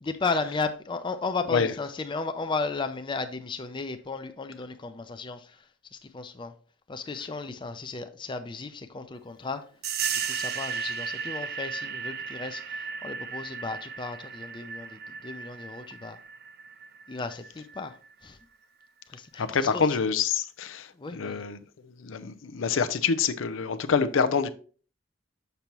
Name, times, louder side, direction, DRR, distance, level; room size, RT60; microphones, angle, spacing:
voice 1, 0.0-5.6 5.9-6.5 6.9-9.6 10.1-16.2 17.1-18.0 18.2-18.4 19.1-19.9 21.0-21.4, left 4 dB, 25° left, 0.5 m, -34 dB
sound 1, 9.8-18.1, right 6 dB, 55° right, 0.5 m, -35 dB
voice 2, 19.4-24.5, left 6 dB, 85° left, 0.5 m, -27 dB
6.7 x 5.8 x 3.0 m
head